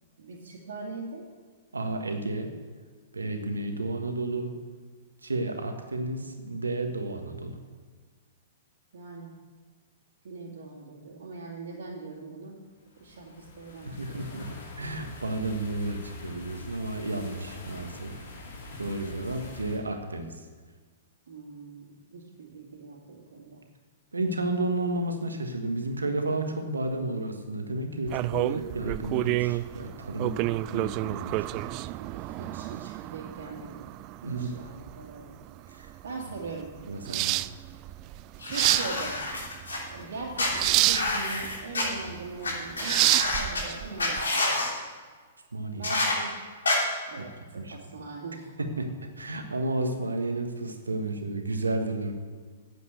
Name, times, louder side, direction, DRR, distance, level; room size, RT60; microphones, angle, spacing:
voice 1, 0.2-1.3 8.9-9.3 10.2-12.6 13.0-14.6 18.3-18.4 19.0-19.6 21.3-23.6 30.2-30.6 32.0-33.9 34.4-35.4 35.6-35.8 36.0-36.7 38.4-39.2 39.9-44.5 45.8-46.3 47.1-48.6, right 3 dB, 70° right, -6 dB, 2.3 m, -41 dB
voice 2, 1.7-2.5 3.1-4.5 5.2-7.6 13.8-14.5 14.8-18.2 18.8-20.3 24.1-30.3 30.7-31.4 34.2-34.5 35.7-35.9 36.9-37.4 45.5-45.9 47.2-47.3 47.6-47.8 48.6-48.9 49.2-52.1, right 2 dB, 90° right, 5 dB, 1.5 m, -32 dB
sound 1, 12.9-19.8, left 3 dB, 65° left, 2.6 m, -45 dB
sound 2, 28.1-44.3, right 18 dB, 40° right, 0.3 m, -29 dB
sound 3, 38.4-39.8 40.4-41.8 42.4-42.5 42.8-43.6 44.0-44.7 45.8-46.1 46.6-46.8, left 2 dB, 80° left, 3.1 m, -28 dB
9.3 x 7.7 x 8.0 m, 1.5 s
hypercardioid pair, 115°, 0 cm